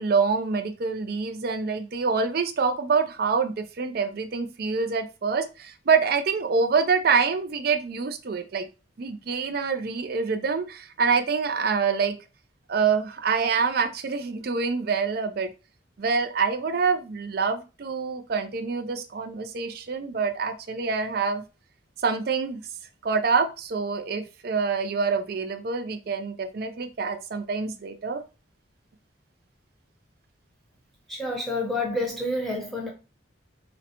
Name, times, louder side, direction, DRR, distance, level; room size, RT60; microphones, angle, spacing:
voice 1, 0.0-8.7 9.0-12.2 12.7-15.5 16.0-21.4 22.0-22.6 23.0-28.2, right 5 dB, 50° right, 0.4 m, -26 dB
voice 2, 31.1-32.9, left 2 dB, ahead, 0.9 m, -28 dB
3.9 x 2.1 x 2.8 m
head